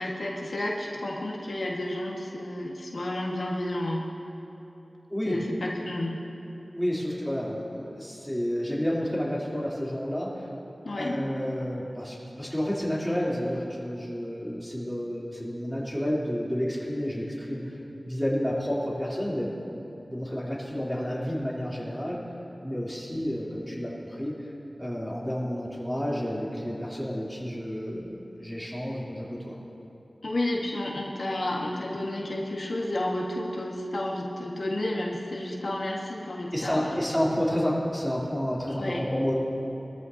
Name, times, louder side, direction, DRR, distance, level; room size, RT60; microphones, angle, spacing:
voice 1, 0.0-4.1 5.2-6.2 10.8-11.2 30.2-37.0 38.7-39.0, left 1 dB, 70° left, -3 dB, 1.6 m, -31 dB
voice 2, 6.7-10.5 11.0-17.8 18.0-19.5 20.0-22.2 22.6-24.3 24.8-29.6 36.5-39.3, equal, ahead, -7 dB, 3.2 m, -30 dB
23.5 x 14.0 x 2.8 m, 2.9 s
wide cardioid pair, 80°, 0 cm